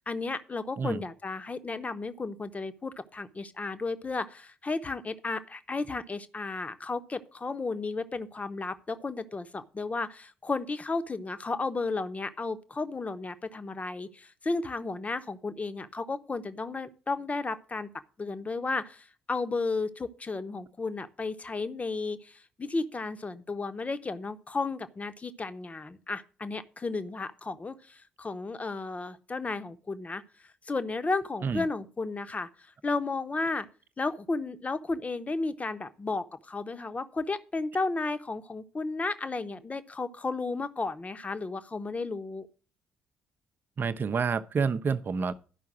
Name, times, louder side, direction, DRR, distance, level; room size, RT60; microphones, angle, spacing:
voice 1, 0.0-17.9 18.2-30.2 30.7-32.5 32.8-33.7 34.0-42.5, left 3 dB, 25° left, 1.0 m, -33 dB
voice 2, 43.8-45.3, right 5 dB, 40° right, 0.7 m, -28 dB
12.0 x 5.6 x 6.1 m
figure-of-eight pair, 45°, 5 cm